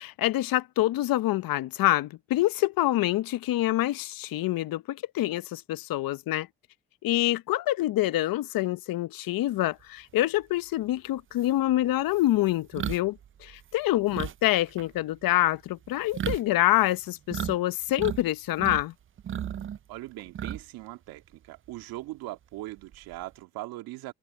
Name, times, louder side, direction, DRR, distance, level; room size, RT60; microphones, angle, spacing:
voice 1, 0.0-6.5 7.0-18.9, left 15 dB, 70° left, 1.1 m, -26 dB
sound 1, 10.8-10.9 11.4-17.6 17.8-18.8 19.2-20.8 21.2-21.4 22.8-23.3, right 9 dB, 35° right, 0.5 m, -35 dB
voice 2, 19.9-24.1, right 18 dB, 80° right, 2.5 m, -40 dB
hypercardioid pair, 55°, 36 cm